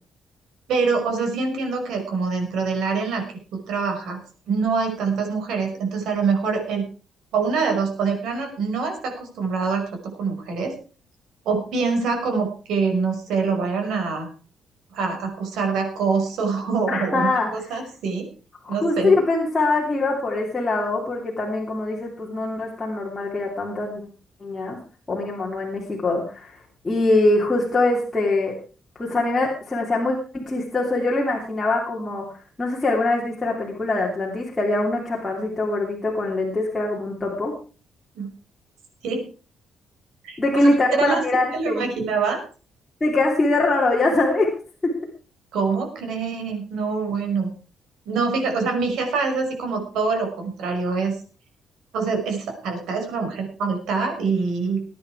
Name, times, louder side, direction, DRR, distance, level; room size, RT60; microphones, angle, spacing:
voice 1, 0.7-4.2 4.5-6.8 7.3-10.7 11.5-14.3 14.9-18.3 18.7-19.1 38.2-38.3 39.0-39.2 40.2-40.4 40.9-41.2 41.5-42.4 45.5-47.5 48.1-51.2 51.9-54.8, right 4 dB, 85° right, 3 dB, 5.5 m, -25 dB
voice 2, 16.9-17.7 18.6-24.1 24.4-24.8 25.1-28.5 28.9-32.3 32.6-37.5 40.4-41.9 43.0-44.5 44.8-44.9, left 2 dB, 15° left, -3 dB, 2.9 m, -23 dB
20.0 x 9.8 x 4.8 m, 0.38 s
cardioid pair, 165°, 0 cm